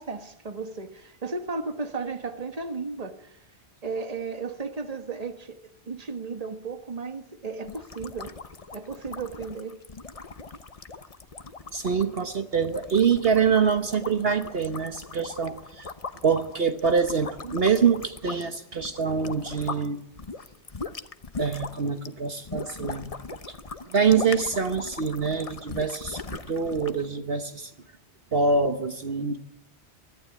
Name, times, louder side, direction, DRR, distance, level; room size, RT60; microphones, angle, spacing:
voice 1, 0.0-3.4 3.8-5.6 5.9-8.4 8.7-9.8, right 4 dB, 35° right, 1.6 m, -34 dB
sound 1, 7.6-19.9 20.2-27.1, left 4 dB, 35° left, 1.0 m, -40 dB
voice 2, 11.7-15.9 16.2-20.0 21.4-23.1 23.9-27.7 28.3-29.4, right 5 dB, 60° right, 1.4 m, -25 dB
24.0 x 14.5 x 8.6 m
omnidirectional pair, 1.1 m